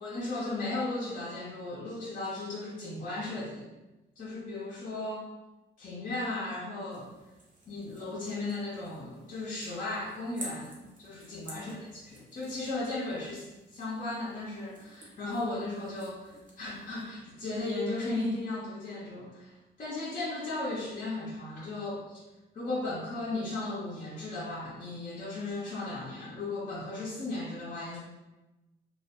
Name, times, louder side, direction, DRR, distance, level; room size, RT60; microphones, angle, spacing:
voice 1, 0.0-3.7 4.2-5.3 5.8-7.1 7.7-22.2 22.5-28.0, left 2 dB, 45° left, -6 dB, 0.6 m, -36 dB
sound 1, 6.9-17.1, right 2 dB, 40° right, 0.7 m, -51 dB
2.2 x 2.1 x 2.8 m, 1.1 s
cardioid pair, 90°, 20 cm